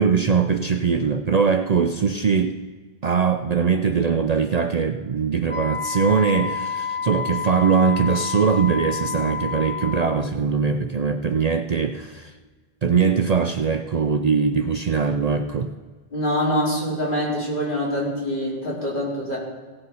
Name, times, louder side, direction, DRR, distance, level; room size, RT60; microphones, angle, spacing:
voice 1, 0.0-2.6 3.0-12.3 12.8-15.7, right 6 dB, 50° right, 8 dB, 0.5 m, -21 dB
Wind instrument woodwind instrument, 5.5-10.3, left 5 dB, 15° left, 0.6 m, -29 dB
voice 2, 16.1-19.4, equal, 55° left, -6 dB, 4.1 m, -24 dB
16.5 x 6.9 x 5.4 m, 1.4 s
omnidirectional pair, 1.0 m